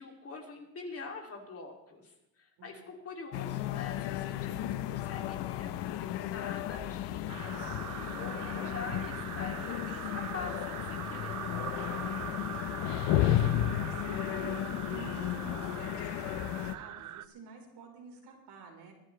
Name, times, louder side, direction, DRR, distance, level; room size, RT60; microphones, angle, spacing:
voice 1, 0.0-7.8 8.1-11.4, left 4 dB, 30° left, 2 dB, 2.8 m, -45 dB
sound 1, 3.3-16.8, left 12 dB, 75° left, 1.0 m, -33 dB
sound 2, 7.3-17.3, right 12 dB, 45° right, 0.6 m, -42 dB
voice 2, 12.9-18.9, right 4 dB, 65° right, 1 dB, 4.3 m, -49 dB
23.5 x 11.5 x 3.3 m, 0.96 s
cardioid pair, 130°, 43 cm